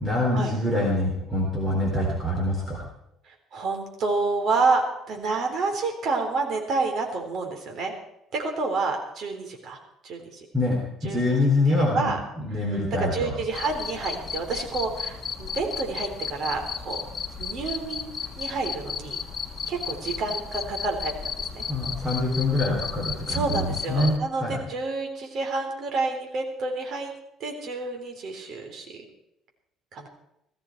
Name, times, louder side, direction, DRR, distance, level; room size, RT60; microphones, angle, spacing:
voice 1, 0.0-2.8 10.5-13.3 21.7-24.6, left 2 dB, 10° right, -2 dB, 3.7 m, -25 dB
voice 2, 3.5-7.9 8.3-9.8 10.0-10.5 11.0-11.4 11.7-12.2 12.6-12.7 12.9-17.0 17.4-19.2 19.7-21.6 23.3-27.1 27.4-28.9 29.9-30.1, right 3 dB, 45° right, 2 dB, 3.9 m, -29 dB
Cricket, 13.5-24.2, left 6 dB, 30° left, 1.4 m, -34 dB
18.0 x 15.0 x 4.7 m, 0.82 s
cardioid pair, 155°, 0 cm